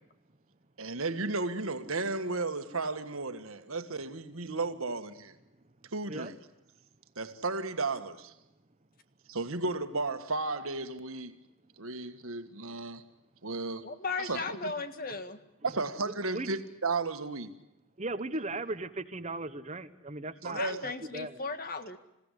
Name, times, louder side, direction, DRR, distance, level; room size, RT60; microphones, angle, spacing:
voice 1, 0.8-5.3 5.9-6.3 7.1-8.3 9.3-11.3 11.8-13.0 13.4-13.9 14.2-14.7 15.6-17.5 20.4-20.8, right 3 dB, 70° right, 1.7 m, -34 dB
voice 2, 13.8-15.4 20.5-22.0, left 4 dB, 40° left, 1.6 m, -36 dB
voice 3, 18.0-21.4, right 2 dB, 30° right, 1.0 m, -37 dB
27.5 x 16.5 x 9.9 m
head